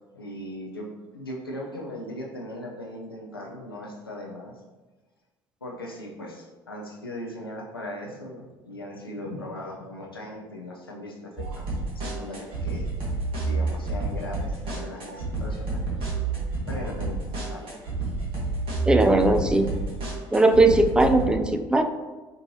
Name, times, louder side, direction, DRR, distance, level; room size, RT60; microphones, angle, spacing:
voice 1, 0.1-4.5 5.6-12.9 13.4-15.8 16.2-17.7, left 1 dB, 90° left, -1 dB, 0.5 m, -38 dB
sound 1, 11.4-21.3, right 3 dB, 50° right, 1.2 m, -29 dB
voice 2, 18.9-19.7 20.3-21.8, right 2 dB, 5° right, 6 dB, 0.4 m, -19 dB
4.5 x 2.6 x 2.7 m, 1.2 s
figure-of-eight pair, 55°, 12 cm